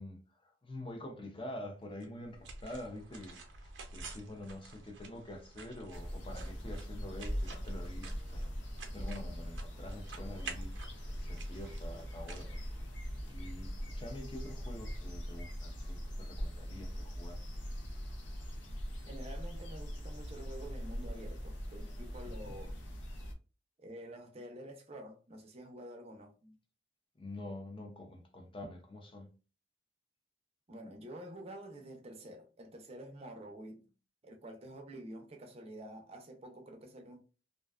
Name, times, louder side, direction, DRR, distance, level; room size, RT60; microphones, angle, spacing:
voice 1, 0.0-8.5 8.9-12.6 13.2-17.4 22.4-22.5 27.2-29.3, left 1 dB, 30° left, 0.5 m, -47 dB
sound 1, 2.0-13.3, right 4 dB, 90° right, 0.6 m, -51 dB
sound 2, 5.9-23.3, equal, 85° left, 0.7 m, -41 dB
voice 2, 19.1-22.8 23.8-26.5 30.7-33.8 34.2-37.2, right 1 dB, 35° right, 0.5 m, -48 dB
2.5 x 2.2 x 2.3 m
head